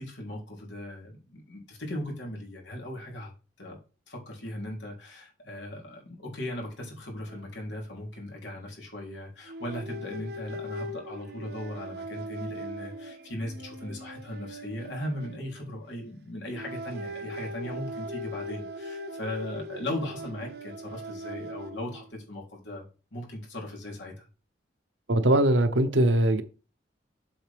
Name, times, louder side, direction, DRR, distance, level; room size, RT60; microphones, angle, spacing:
voice 1, 0.0-3.3 3.6-3.8 4.1-22.9 23.1-24.3, left 1 dB, 75° left, 3.6 m, -38 dB
sound 1, 7.3-7.4 7.7-7.9 9.5-16.1 16.5-22.1, equal, 60° right, 0.9 m, -40 dB
voice 2, 25.1-26.4, right 1 dB, 85° right, 1.0 m, -21 dB
7.8 x 6.5 x 3.6 m
head